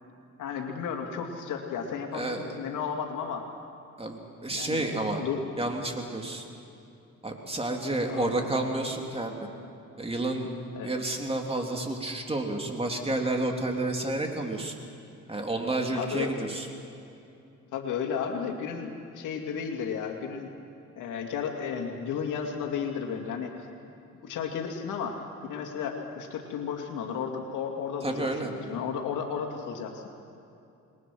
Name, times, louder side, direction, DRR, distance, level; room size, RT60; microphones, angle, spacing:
voice 1, 0.4-3.5 4.5-5.4 8.0-8.4 10.7-10.9 15.9-16.5 17.7-20.5 21.0-23.7 24.2-30.1, left 6 dB, 90° left, 3 dB, 2.6 m, -33 dB
voice 2, 2.1-2.5 4.0-5.2 5.6-6.4 7.2-9.3 10.0-10.5 10.8-14.7 15.3-16.7 28.0-28.5, right 2 dB, 20° right, 2 dB, 3.3 m, -30 dB
28.0 x 21.5 x 6.2 m, 2.7 s
cardioid pair, 90°, 30 cm